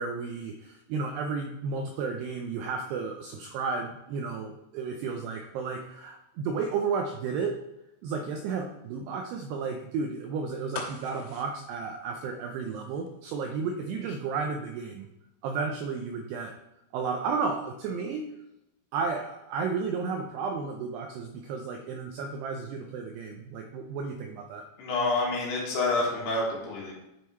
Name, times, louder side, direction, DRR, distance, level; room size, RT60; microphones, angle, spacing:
voice 1, 0.0-7.6 8.0-15.1 15.4-16.5 16.9-18.3 18.9-24.7, right 5 dB, 85° right, 3 dB, 2.4 m, -33 dB
sound 1, 10.7-12.8 13.1-13.2, left 4 dB, 80° left, 3.5 m, -41 dB
voice 2, 24.8-26.9, left 2 dB, 65° left, -2 dB, 3.4 m, -28 dB
9.5 x 5.4 x 4.5 m, 0.89 s
omnidirectional pair, 5.4 m